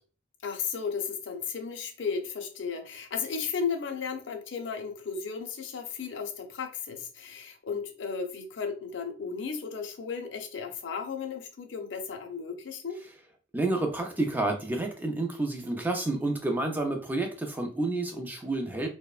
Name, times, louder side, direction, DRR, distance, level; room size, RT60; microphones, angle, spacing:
voice 1, 0.4-13.0, left 5 dB, 60° left, 0.5 m, -34 dB
voice 2, 13.5-18.9, right 2 dB, 10° right, 0.3 m, -29 dB
2.8 x 2.1 x 2.3 m
head